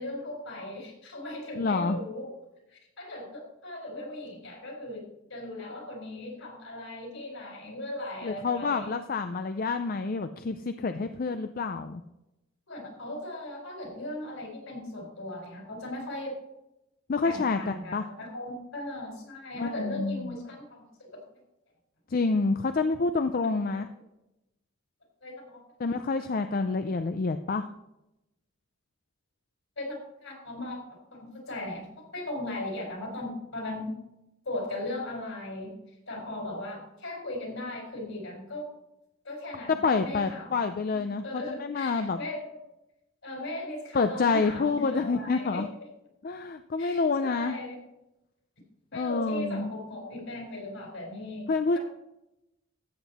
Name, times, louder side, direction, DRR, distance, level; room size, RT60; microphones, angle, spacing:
voice 1, 0.0-2.3 2.7-8.9 12.7-16.4 17.2-21.2 23.4-23.5 25.2-25.6 26.2-26.7 29.8-30.8 31.1-33.9 34.4-35.7 36.1-38.7 39.2-42.6 43.2-45.6 46.8-47.8 48.9-51.5, left 1 dB, 65° left, 1 dB, 4.2 m, -38 dB
voice 2, 1.5-2.0 8.2-12.0 17.1-18.1 19.6-20.4 22.1-23.9 25.8-27.7 39.7-42.2 43.9-45.7 46.2-47.6 48.9-49.7 51.5-51.8, left 4 dB, 45° left, 9 dB, 0.4 m, -28 dB
14.0 x 8.0 x 4.2 m, 0.91 s
head